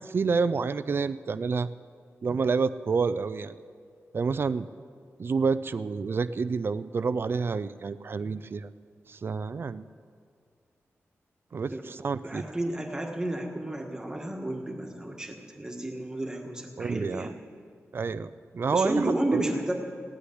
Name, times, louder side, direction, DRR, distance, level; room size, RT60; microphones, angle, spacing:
voice 1, 0.0-1.7 2.2-3.5 4.1-4.7 5.2-8.7 9.1-9.8 11.5-12.4 16.8-17.3 17.9-19.4, right 5 dB, 45° right, 14 dB, 0.4 m, -28 dB
voice 2, 12.2-17.3 18.7-19.7, right 1 dB, 15° right, 2 dB, 1.6 m, -31 dB
16.5 x 8.4 x 9.9 m, 2.2 s
wide cardioid pair, 155°, 5 cm